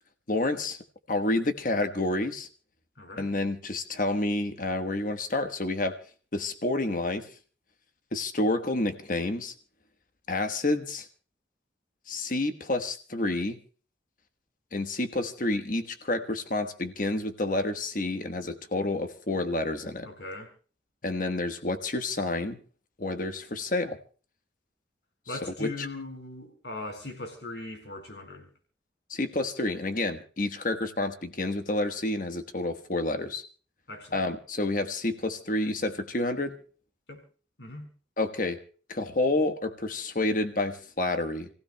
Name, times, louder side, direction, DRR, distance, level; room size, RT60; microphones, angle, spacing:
voice 1, 0.3-0.8 1.1-2.5 3.2-6.0 6.3-7.3 8.1-9.5 10.3-11.1 12.1-13.6 14.7-20.1 21.0-22.6 23.0-24.0 25.3-25.9 29.1-33.4 34.1-36.6 38.2-38.6 38.9-41.5, left 2 dB, 50° left, 1.2 m, -29 dB
voice 2, 3.0-3.3 20.0-20.5 25.3-28.5 33.9-34.2 37.1-37.2 37.6-37.9, left 2 dB, 75° left, 4.4 m, -39 dB
29.5 x 16.0 x 2.2 m
head